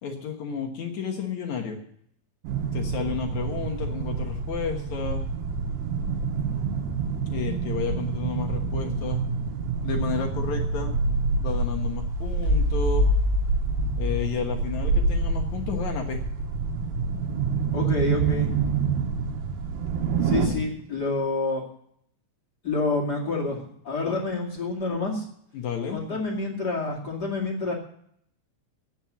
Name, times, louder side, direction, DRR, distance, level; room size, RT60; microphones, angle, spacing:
voice 1, 0.0-1.8 2.7-5.2 7.3-9.2 9.8-10.9 11.4-13.1 14.0-16.2 20.4-20.6 25.5-26.2, left 6 dB, 70° left, 3 dB, 1.8 m, -32 dB
sound 1, 2.4-20.5, right 3 dB, 75° right, 3.5 m, -26 dB
voice 2, 17.7-18.5 20.2-21.6 22.6-25.2 25.9-27.7, left 3 dB, 35° left, -1 dB, 1.6 m, -28 dB
12.0 x 9.0 x 7.2 m, 0.68 s
omnidirectional pair, 5.3 m